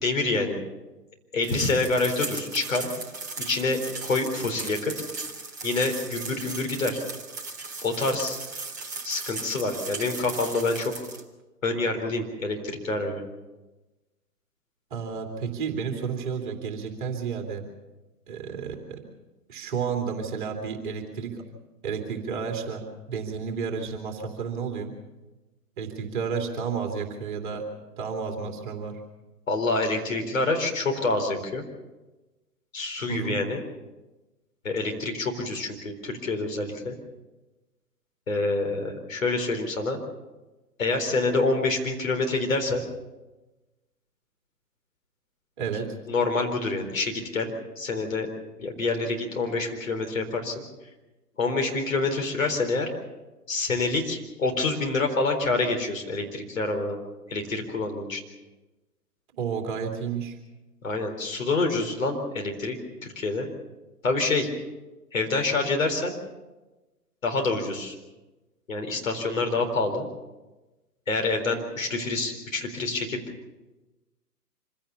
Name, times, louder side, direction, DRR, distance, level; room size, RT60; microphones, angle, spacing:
voice 1, 0.0-0.6 1.3-2.9 3.4-4.9 5.6-7.0 7.8-8.4 9.0-10.9 11.6-13.2 29.5-31.6 32.7-33.6 34.6-37.0 38.3-40.0 40.8-42.8 46.1-48.3 48.6-50.6 51.4-52.9 53.5-57.0 57.3-58.2 60.8-63.5 64.0-64.5 65.1-66.1 67.2-68.0 68.7-70.0 71.1-73.2, left 3 dB, 55° left, 3 dB, 4.2 m, -27 dB
sound 1, 1.4-11.2, right 3 dB, 10° right, 0.6 m, -37 dB
voice 2, 14.9-17.7 18.3-19.1 19.5-21.5 21.8-24.9 25.8-27.6 28.0-29.0 33.1-33.4 45.6-46.0 59.3-60.4, right 6 dB, 30° right, 3 dB, 2.8 m, -31 dB
25.5 x 16.5 x 7.1 m, 1.1 s
figure-of-eight pair, 130°, 48 cm